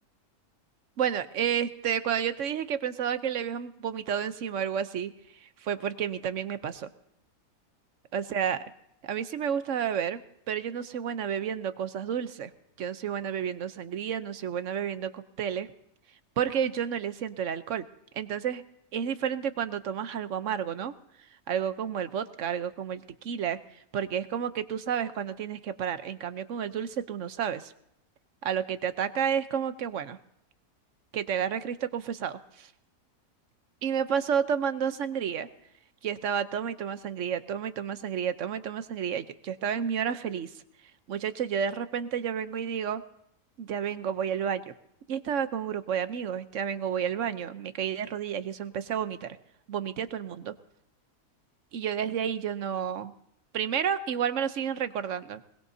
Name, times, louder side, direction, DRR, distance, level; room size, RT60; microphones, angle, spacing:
voice 1, 1.0-5.1 5.4-6.9 8.1-8.6 9.0-12.5 12.8-15.7 16.4-17.9 18.1-18.6 18.9-20.9 21.5-27.7 28.4-30.2 31.1-32.7 33.8-35.5 36.0-40.5 41.1-43.0 43.6-44.7 45.1-49.4 49.7-50.5 51.7-53.1 53.5-55.4, right 8 dB, 60° right, 12 dB, 1.1 m, -31 dB
21.0 x 21.0 x 2.7 m, 0.76 s
omnidirectional pair, 1.6 m